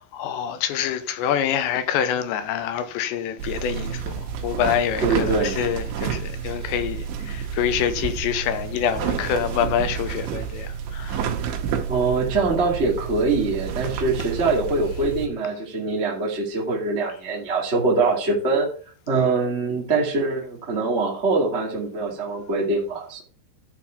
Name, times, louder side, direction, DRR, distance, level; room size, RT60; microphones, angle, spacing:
voice 1, 0.1-11.6, left 9 dB, 80° left, 3.0 m, -26 dB
sound 1, 3.4-15.3, right 7 dB, 85° right, 3.7 m, -30 dB
voice 2, 5.0-5.6 11.9-18.7 19.1-23.2, right 3 dB, 30° right, 1.2 m, -23 dB
11.5 x 4.5 x 5.8 m
omnidirectional pair, 5.4 m